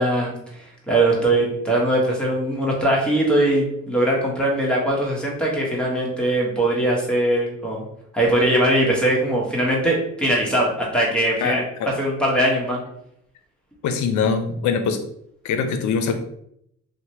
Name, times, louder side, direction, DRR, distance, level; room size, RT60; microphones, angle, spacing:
voice 1, 0.0-7.8 8.1-11.6 12.0-12.8, right 1 dB, 5° left, -4 dB, 1.0 m, -21 dB
voice 2, 11.4-11.9 13.8-15.0 15.4-16.1, left 5 dB, 70° left, 6 dB, 0.5 m, -23 dB
2.8 x 2.1 x 2.8 m, 0.73 s
cardioid pair, 90°, 30 cm